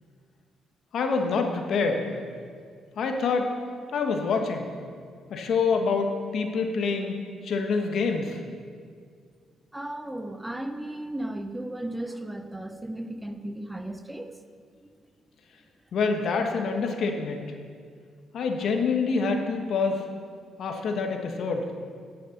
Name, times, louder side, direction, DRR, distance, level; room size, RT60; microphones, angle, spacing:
voice 1, 0.9-2.0 3.0-3.5 3.9-4.7 5.3-7.1 7.4-8.4 15.9-17.5 18.3-20.0 20.6-21.7, left 4 dB, 65° left, 4 dB, 1.3 m, -26 dB
voice 2, 9.7-14.4, right 1 dB, 10° right, 8 dB, 0.7 m, -35 dB
11.0 x 6.5 x 8.0 m, 2.1 s
cardioid pair, 90°, 0 cm